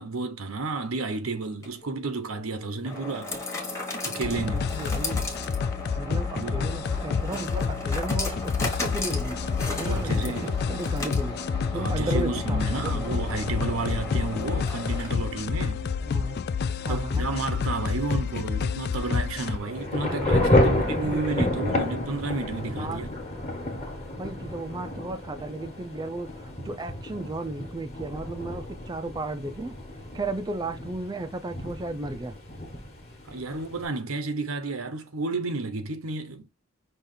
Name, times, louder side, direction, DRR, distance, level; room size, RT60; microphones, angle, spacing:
voice 1, 0.0-3.3 4.0-4.7 6.4-6.6 9.8-10.6 11.7-15.8 16.9-23.1 33.3-36.5, right 3 dB, 85° right, 0.9 m, -31 dB
sound 1, 1.4-15.4, left 2 dB, 15° left, 1.1 m, -36 dB
sound 2, 4.2-19.6, left 5 dB, 50° left, 0.3 m, -29 dB
voice 2, 4.2-5.2 6.0-9.4 9.7-10.3 10.7-11.4 11.7-13.1 16.0-16.4 16.8-17.2 20.0-20.6 20.9-21.9 22.7-23.0 24.2-29.8 30.1-32.3, right 2 dB, 20° right, 0.4 m, -35 dB
Thunder / Rain, 19.4-33.8, left 1 dB, 30° left, 1.3 m, -30 dB
5.5 x 2.4 x 3.7 m
head